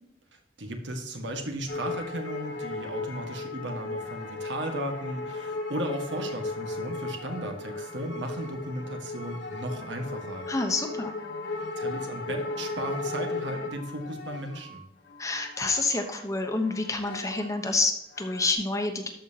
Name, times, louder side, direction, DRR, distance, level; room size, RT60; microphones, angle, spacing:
voice 1, 0.6-10.5 11.8-14.8, right 1 dB, 75° right, 4 dB, 1.5 m, -35 dB
sound 1, 1.7-16.2 16.6-17.7 18.1-18.5, left 3 dB, 70° left, 1.1 m, -36 dB
voice 2, 10.5-11.1 15.2-19.1, left 3 dB, 15° left, 5 dB, 1.0 m, -28 dB
13.5 x 5.4 x 2.9 m, 0.86 s
head